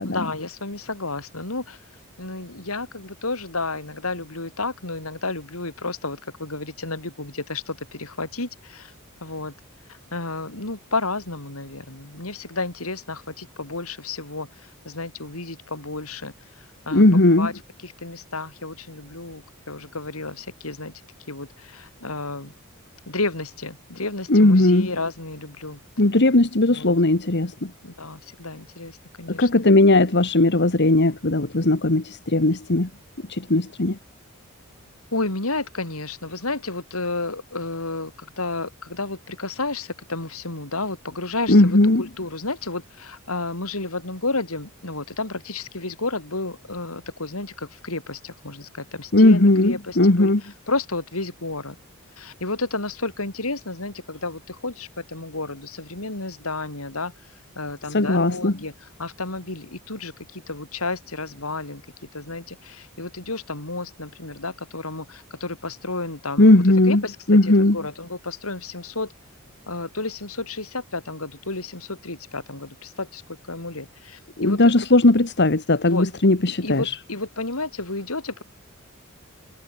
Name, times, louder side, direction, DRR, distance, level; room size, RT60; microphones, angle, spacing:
voice 1, 0.0-1.8 2.2-8.9 9.2-9.5 10.1-14.5 14.8-16.3 16.9-17.5 17.8-20.9 21.3-22.5 23.1-25.8 26.7-26.9 27.8-29.5 35.1-50.3 50.7-51.7 52.2-57.1 57.6-61.8 62.1-69.1 69.7-73.2 73.5-74.7 75.9-76.1 76.5-78.4, left 3 dB, 85° left, 4.7 m, -31 dB
voice 2, 16.9-17.5 24.3-24.9 26.0-27.7 29.3-32.9 33.3-34.0 41.5-42.0 49.1-50.4 57.9-58.5 66.4-67.0 67.3-67.8 74.4-76.9, left 2 dB, 55° left, 1.6 m, -17 dB
head